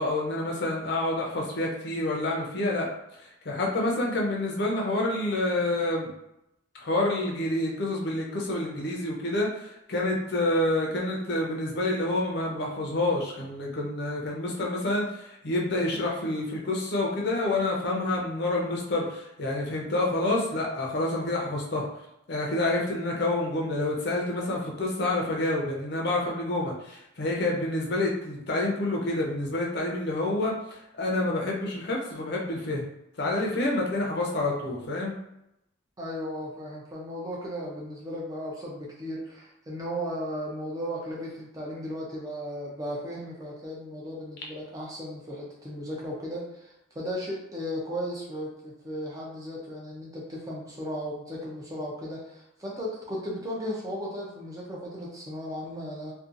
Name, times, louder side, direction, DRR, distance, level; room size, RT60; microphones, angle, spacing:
voice 1, 0.0-2.9 3.2-6.1 6.8-21.9 22.3-32.8 33.2-35.1, left 2 dB, 50° left, -2 dB, 0.6 m, -28 dB
voice 2, 36.0-56.1, equal, 15° right, -4 dB, 0.4 m, -36 dB
2.6 x 2.3 x 2.5 m, 0.83 s
head